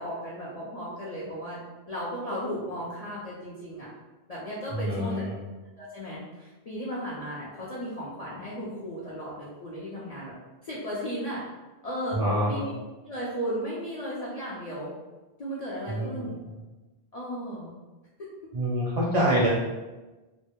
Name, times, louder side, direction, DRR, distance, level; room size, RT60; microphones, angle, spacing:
voice 1, 0.0-1.6 1.9-3.9 4.3-5.2 5.8-10.3 10.6-11.4 11.8-12.2 12.5-12.7 13.1-14.9 15.4-16.3 17.1-17.7, equal, 55° left, -8 dB, 0.4 m, -35 dB
voice 2, 4.7-5.3 12.1-12.6 15.9-16.3 18.5-19.5, equal, 50° right, -6 dB, 0.5 m, -26 dB
2.1 x 2.0 x 2.8 m, 1.2 s
omnidirectional pair, 1.1 m